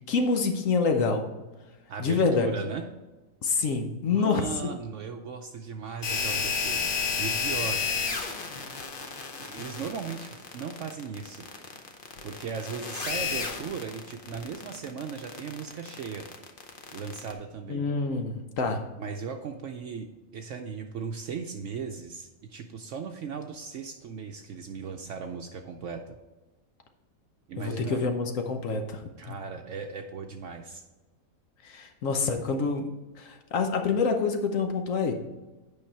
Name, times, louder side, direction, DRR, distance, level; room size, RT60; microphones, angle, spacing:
voice 1, 0.1-1.3 2.0-2.5 3.4-4.7 17.7-18.8 27.6-29.4 31.6-32.9 33.2-35.1, left 4 dB, 65° left, 5 dB, 1.2 m, -27 dB
voice 2, 1.9-2.9 4.1-7.8 9.5-11.4 12.2-16.3 16.9-17.8 19.0-26.2 27.5-28.0 29.2-30.8, right 6 dB, 65° right, 4 dB, 0.9 m, -37 dB
sound 1, 6.0-17.3, left 5 dB, 45° left, 0.9 m, -32 dB
8.7 x 5.5 x 4.5 m, 1.2 s
omnidirectional pair, 1.5 m